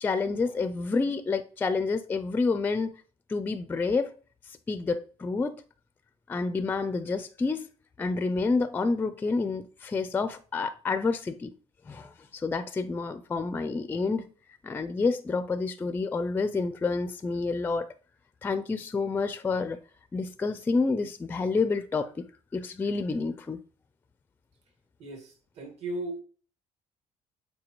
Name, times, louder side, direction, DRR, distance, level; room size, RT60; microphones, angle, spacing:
voice 1, 0.0-2.9 3.3-4.1 4.7-5.6 6.3-7.7 8.0-11.5 11.9-14.2 14.6-17.9 18.4-19.8 20.1-22.3 22.5-23.6, left 4 dB, 15° left, 0.4 m, -29 dB
voice 2, 25.0-26.2, right 2 dB, 55° right, 1.7 m, -36 dB
7.5 x 4.5 x 3.0 m
cardioid pair, 130°, 13 cm